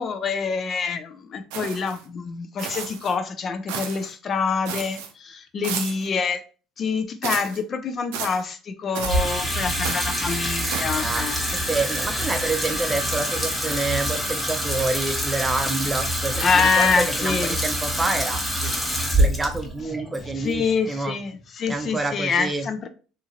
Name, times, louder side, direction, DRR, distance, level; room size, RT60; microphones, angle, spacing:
voice 1, 0.0-6.4 6.8-11.4 16.4-17.6 20.4-22.9, left 5 dB, 45° left, 0.4 m, -26 dB
sound 1, 1.5-2.0 2.6-3.1 3.7-4.1 4.7-5.1 5.6-6.1 7.2-7.6 8.1-8.4 9.0-9.3 9.8-10.2 10.7-11.1, right 7 dB, 80° right, 0.4 m, -32 dB
Water tap faucet / Sink (filling or washing), 9.0-21.4, equal, ahead, 0.9 m, -26 dB
Trumpet, 9.1-14.6, left 2 dB, 75° left, 1.5 m, -39 dB
voice 2, 11.5-21.1 21.7-22.7, right 3 dB, 20° right, 0.6 m, -28 dB
2.8 x 2.4 x 2.8 m
supercardioid pair, 80°, 0 cm